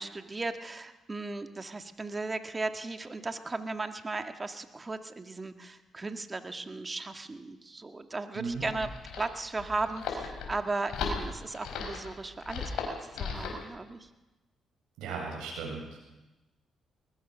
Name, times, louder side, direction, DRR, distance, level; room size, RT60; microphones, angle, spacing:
voice 1, 0.0-14.1, right 3 dB, 30° right, 8 dB, 1.8 m, -36 dB
sound 1, 8.5-13.6, left 5 dB, 80° left, 5.1 m, -36 dB
voice 2, 15.0-16.0, right 4 dB, 90° right, -1 dB, 7.9 m, -36 dB
20.5 x 20.5 x 6.4 m, 1.1 s
supercardioid pair, 65°, 0 cm